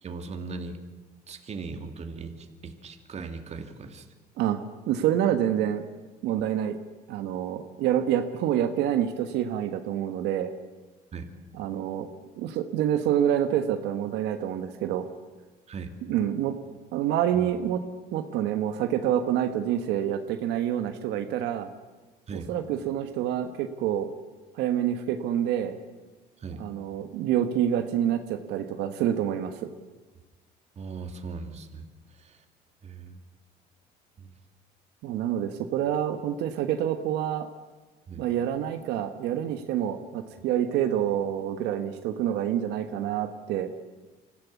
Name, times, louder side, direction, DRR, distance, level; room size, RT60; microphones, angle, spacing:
voice 1, 0.0-0.8 1.3-4.1 11.1-11.3 15.7-16.0 17.4-17.5 22.3-22.5 26.4-26.6 30.8-32.4 32.8-33.2 34.2-34.3 38.1-38.2, right 4 dB, 40° right, 6 dB, 2.5 m, -39 dB
voice 2, 4.9-5.8 6.2-6.8 7.1-10.5 11.6-12.1 12.3-15.1 16.1-16.5 16.9-17.8 18.1-21.7 22.3-24.1 24.5-25.8 26.6-29.7 35.0-37.5 38.2-43.7, right 10 dB, 85° right, 7 dB, 1.4 m, -27 dB
25.0 x 15.5 x 8.5 m, 1.2 s
cardioid pair, 110°, 17 cm